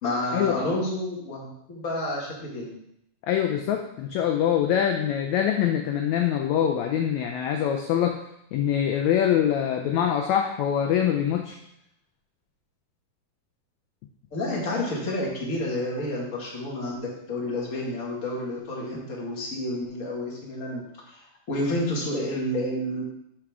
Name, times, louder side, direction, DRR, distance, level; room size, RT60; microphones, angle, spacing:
voice 1, 0.0-2.7 14.3-21.2 21.5-23.0, left 1 dB, 30° left, -4 dB, 1.8 m, -30 dB
voice 2, 3.3-8.2 8.5-11.6, left 9 dB, 80° left, 4 dB, 1.7 m, -24 dB
12.0 x 4.7 x 3.6 m, 0.78 s
omnidirectional pair, 3.8 m